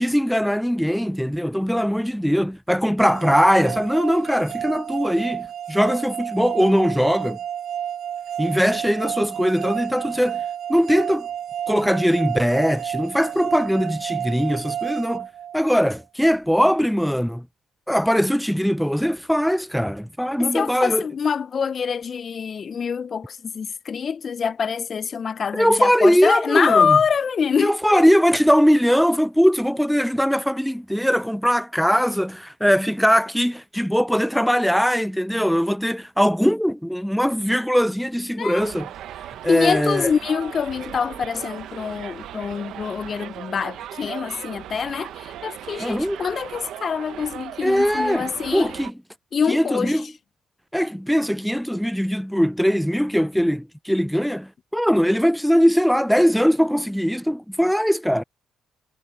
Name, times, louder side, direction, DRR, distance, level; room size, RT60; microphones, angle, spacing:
voice 1, 0.0-7.4 8.4-10.4 10.7-11.3 11.7-15.3 15.5-17.5 17.9-21.0 25.5-27.0 27.6-38.9 39.4-40.1 45.8-46.2 47.6-48.9 49.5-50.1 50.7-58.2, equal, ahead, 0.4 m, -20 dB
sound 1, 3.0-16.0, right 10 dB, 65° right, 0.4 m, -31 dB
voice 2, 20.4-28.1 38.4-38.7 39.5-48.7 49.3-50.0, left 6 dB, 45° left, 0.6 m, -25 dB
Subway metro underground, 38.6-48.9, right 11 dB, 80° right, 1.1 m, -37 dB
cardioid pair, 90°, 0 cm